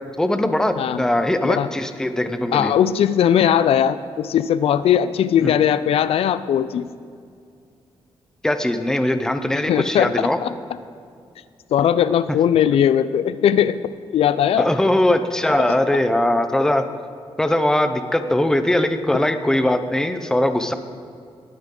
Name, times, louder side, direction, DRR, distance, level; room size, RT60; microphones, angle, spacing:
voice 1, 0.2-2.7 5.4-5.5 8.4-10.4 14.6-16.9 17.4-20.7, left 1 dB, 5° left, 8 dB, 0.7 m, -20 dB
voice 2, 2.5-6.9 9.7-10.5 11.7-13.8 14.1-14.7, left 9 dB, 75° left, 14 dB, 0.4 m, -19 dB
19.5 x 9.4 x 3.8 m, 2.3 s
wide cardioid pair, 150°, 10 cm